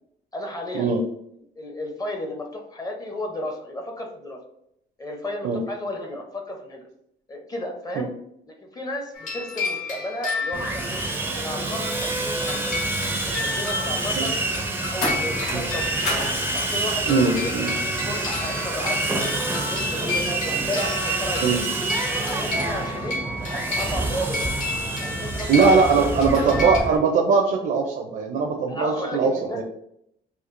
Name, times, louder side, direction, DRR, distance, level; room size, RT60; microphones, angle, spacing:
voice 1, 0.3-0.9 1.6-4.4 5.0-6.9 7.3-8.1 8.5-11.0 11.3-12.8 13.4-14.4 14.7-16.1 16.5-17.6 17.9-20.1 20.4-21.7 22.2-23.2 23.5-24.5 25.0-26.1 26.4-26.6 28.7-29.6, left 1 dB, 20° left, 3 dB, 0.7 m, -33 dB
sound 1, 9.1-11.1 12.5-26.8, left 3 dB, 50° left, 1.1 m, -32 dB
Sawing, 10.5-27.0, right 2 dB, 15° right, 0.5 m, -27 dB
sound 2, 12.5-12.9 15.0-15.7 16.0-16.4 17.3-17.5, left 2 dB, 75° left, 1.3 m, -29 dB
voice 2, 17.1-17.7 21.4-21.6 25.5-29.6, right 4 dB, 60° right, 1 dB, 0.5 m, -20 dB
4.3 x 2.4 x 2.5 m, 0.75 s
cardioid pair, 110°, 17 cm